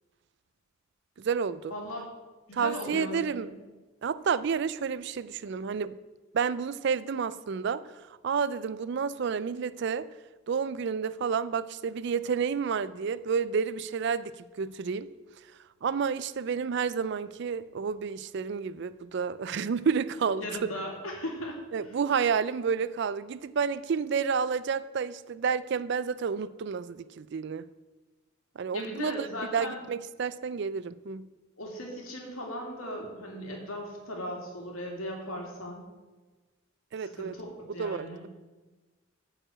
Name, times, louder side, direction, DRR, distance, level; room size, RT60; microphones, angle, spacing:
voice 1, 1.2-1.7 2.5-3.5 4.0-6.0 6.3-10.1 10.5-14.3 14.6-15.1 15.8-20.5 21.7-27.6 28.6-29.3 29.5-31.3 36.9-37.3 37.8-38.3, right 6 dB, 55° right, 16 dB, 0.4 m, -30 dB
voice 2, 1.7-2.0 2.5-3.6 20.4-21.6 28.7-29.8 31.6-35.9 37.2-38.2, left 1 dB, 90° left, 0 dB, 2.4 m, -37 dB
9.2 x 4.9 x 7.5 m, 1.2 s
head